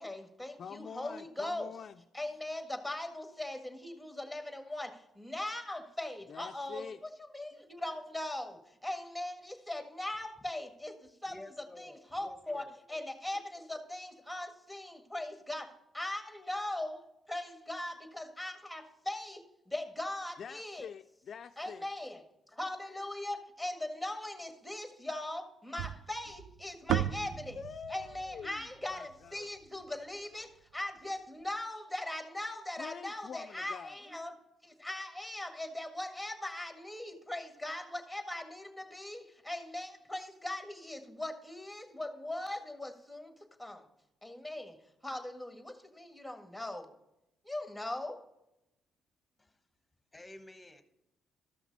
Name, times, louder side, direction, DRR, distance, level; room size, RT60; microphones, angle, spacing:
voice 1, 0.0-1.7 2.1-6.9 7.3-11.4 11.8-20.9 21.6-27.6 27.9-34.3 34.6-43.3 43.6-43.8 44.2-44.8 45.0-46.9 47.4-48.2, left 1 dB, ahead, 5 dB, 1.7 m, -40 dB
voice 2, 0.6-2.0 6.3-7.0 20.4-21.9 27.2-29.5 32.8-34.0, left 7 dB, 55° left, 9 dB, 0.3 m, -46 dB
voice 3, 11.3-12.7 49.4-49.6 50.1-50.8, left 1 dB, 15° left, 8 dB, 1.1 m, -52 dB
sound 1, 25.8-30.1, right 11 dB, 85° right, 0.4 m, -37 dB
13.5 x 6.0 x 4.0 m, 0.87 s
cardioid pair, 90°, 0 cm